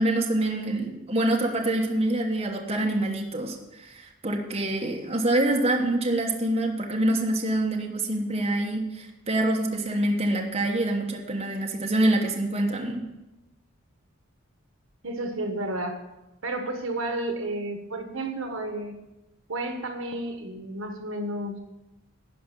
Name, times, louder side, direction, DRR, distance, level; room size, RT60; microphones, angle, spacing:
voice 1, 0.0-13.0, right 1 dB, 30° right, 1 dB, 1.2 m, -26 dB
voice 2, 15.0-16.0 16.4-18.9 19.5-21.6, right 1 dB, 70° right, 6 dB, 1.3 m, -31 dB
12.0 x 5.1 x 8.3 m, 0.98 s
head